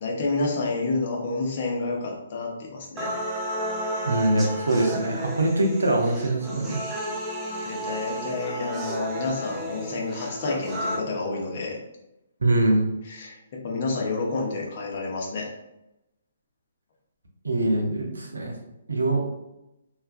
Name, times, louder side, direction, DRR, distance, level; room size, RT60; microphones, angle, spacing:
voice 1, 0.0-3.1 7.6-11.8 13.0-15.5, left 3 dB, 50° left, -1 dB, 0.7 m, -29 dB
sound 1, 3.0-11.0, equal, 15° right, 0.4 m, -32 dB
voice 2, 4.1-6.8 12.4-12.8 17.4-18.5 18.9-19.2, right 2 dB, 85° right, 1 dB, 0.5 m, -23 dB
2.4 x 2.2 x 2.4 m, 0.90 s
hypercardioid pair, 140°, 0 cm